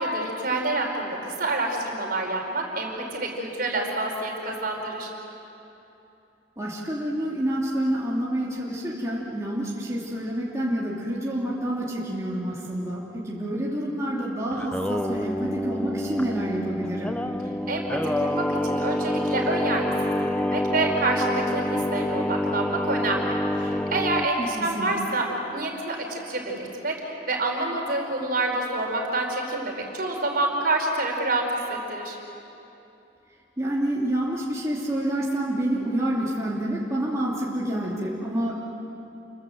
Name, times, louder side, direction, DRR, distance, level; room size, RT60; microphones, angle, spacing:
voice 1, 0.0-5.1 17.7-19.9 20.2-25.3 25.5-27.0 27.3-32.2, right 2 dB, 50° right, 1 dB, 4.5 m, -27 dB
voice 2, 6.6-17.2 24.4-24.9 33.6-38.5, right 1 dB, 15° right, -6 dB, 2.8 m, -28 dB
Singing, 14.5-24.3, left 1 dB, 5° left, 0.5 m, -27 dB
29.5 x 23.0 x 7.8 m, 2.9 s
head